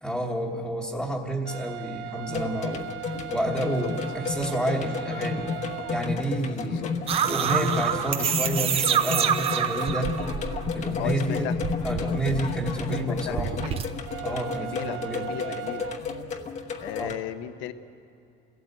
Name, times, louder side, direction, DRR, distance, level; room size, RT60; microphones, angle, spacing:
voice 1, 0.0-2.9 3.3-6.8 7.2-10.2 10.7-11.5 11.8-13.5 14.2-15.3 17.0-17.1, right 1 dB, ahead, -4 dB, 1.3 m, -30 dB
sound 1, 1.5-6.1 14.1-16.0, right 15 dB, 90° right, 0.7 m, -38 dB
sound 2, 2.3-17.2, left 4 dB, 35° left, 1.1 m, -32 dB
voice 2, 6.6-6.9 11.0-11.6 13.0-13.8 14.6-15.9 16.8-17.7, left 11 dB, 70° left, 10 dB, 1.1 m, -36 dB
sound 3, 7.1-11.1 11.4-13.8, right 8 dB, 30° right, 0.7 m, -27 dB
27.5 x 17.0 x 8.1 m, 2.6 s
cardioid pair, 170°, 20 cm